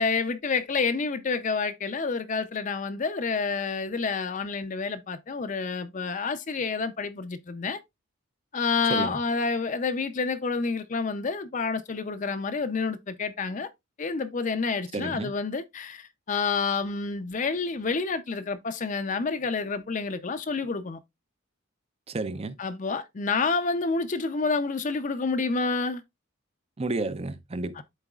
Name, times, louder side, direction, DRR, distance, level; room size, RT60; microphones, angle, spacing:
voice 1, 0.0-7.8 8.5-13.7 14.0-21.0 22.6-26.0 27.8-27.9, left 4 dB, 40° left, 0.5 m, -28 dB
voice 2, 14.9-15.3 22.1-22.6 26.8-27.8, right 2 dB, 30° right, 0.5 m, -31 dB
11.5 x 4.0 x 2.3 m
head